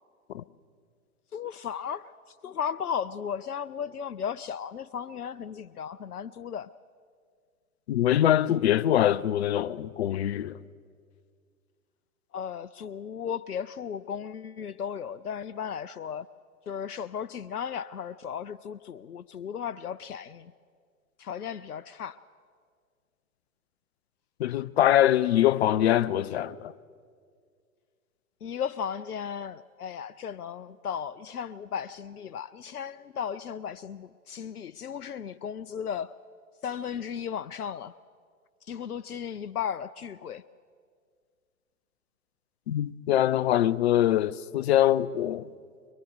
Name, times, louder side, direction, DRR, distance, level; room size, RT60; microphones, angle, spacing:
voice 1, 1.3-2.1 2.4-6.7 12.3-16.3 16.7-20.5 21.2-22.2 28.4-36.1 36.6-37.9 38.7-40.4, left 8 dB, 90° left, 0.6 m, -35 dB
voice 2, 7.9-10.6 24.4-26.7 42.7-45.5, left 12 dB, 45° left, 0.6 m, -23 dB
23.0 x 22.0 x 6.7 m
figure-of-eight pair, 115°, 44 cm